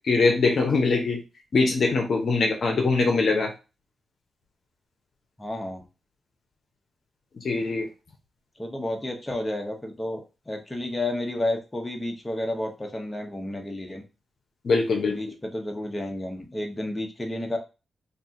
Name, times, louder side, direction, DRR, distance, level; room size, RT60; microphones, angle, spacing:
voice 1, 0.1-1.2 1.5-3.5 7.4-7.9 14.6-15.2, left 3 dB, 65° left, 1 dB, 0.7 m, -22 dB
voice 2, 5.4-5.8 8.6-10.2 10.5-14.0 15.1-17.6, left 1 dB, 20° left, 3 dB, 1.0 m, -31 dB
2.6 x 2.5 x 3.6 m, 0.30 s
supercardioid pair, 45°, 0 cm